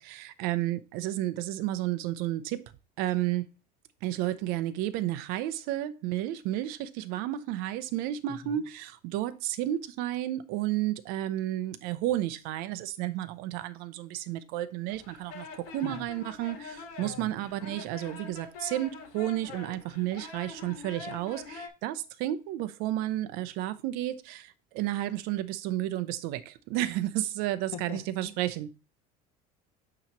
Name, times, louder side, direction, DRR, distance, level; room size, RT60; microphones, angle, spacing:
voice 1, 0.0-2.7 3.0-3.5 4.0-15.5 15.7-28.7, right 14 dB, 50° right, 0.5 m, -32 dB
voice 2, 8.3-8.6 15.8-16.1 17.0-17.3 27.7-28.3, left 7 dB, 35° left, 0.8 m, -42 dB
sound 1, 14.9-21.7, left 4 dB, 80° left, 1.4 m, -44 dB
8.5 x 3.0 x 4.3 m
cardioid pair, 175°, 20 cm